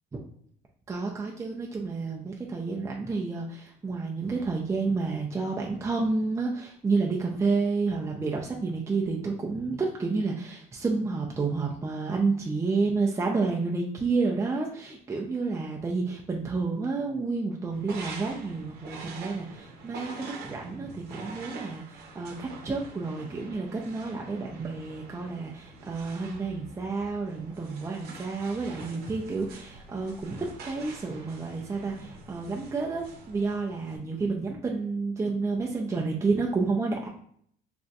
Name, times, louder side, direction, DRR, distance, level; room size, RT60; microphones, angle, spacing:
voice 1, 0.9-37.1, right 4 dB, 15° right, -1 dB, 0.4 m, -30 dB
sound 1, 17.7-34.0, right 3 dB, 70° right, 0.7 m, -45 dB
2.5 x 2.2 x 3.9 m, 0.64 s
cardioid pair, 110°, 17 cm